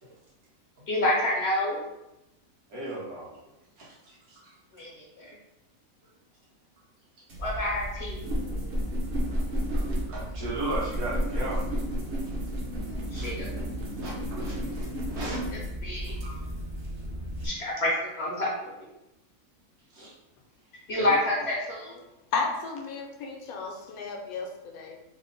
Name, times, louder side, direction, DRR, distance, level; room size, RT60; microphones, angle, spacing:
voice 1, 0.9-1.8 4.7-5.3 7.4-8.2 13.1-13.5 15.8-16.1 17.4-18.7 20.9-22.0, left 1 dB, 60° left, -3 dB, 0.7 m, -28 dB
voice 2, 2.7-3.4 3.8-4.5 9.7-11.6 13.1-13.3 14.0-14.1 14.4-15.4 19.9-20.1 20.9-21.2, right 2 dB, 75° right, -6 dB, 1.6 m, -36 dB
sound 1, 7.3-17.5, equal, 50° right, 0.8 m, -32 dB
voice 3, 22.3-25.0, left 4 dB, 75° left, 2 dB, 1.1 m, -33 dB
3.5 x 2.1 x 3.8 m, 0.92 s
omnidirectional pair, 1.6 m